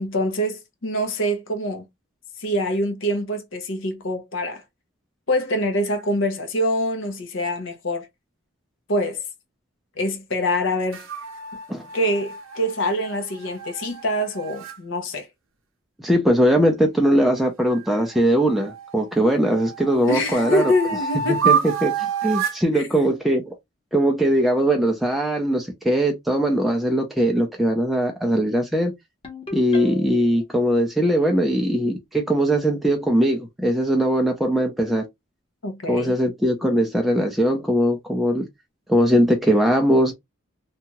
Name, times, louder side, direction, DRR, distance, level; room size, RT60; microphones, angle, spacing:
voice 1, 0.0-1.9 2.4-4.6 5.3-8.1 8.9-9.2 10.0-11.1 11.9-15.3 20.1-21.7 22.7-22.8 35.6-36.1, equal, 65° left, 0.8 m, -25 dB
sound 1, 10.9-14.8 17.7-19.0 19.5-22.7, right 6 dB, 70° right, 0.7 m, -28 dB
voice 2, 16.0-20.7 21.3-21.6 21.8-21.9 22.2-23.5 23.9-28.9 29.5-35.0 35.9-38.5 38.9-40.1, equal, ahead, 0.4 m, -20 dB
Ringtone, 29.2-30.4, equal, 25° left, 1.0 m, -36 dB
2.7 x 2.3 x 2.8 m
head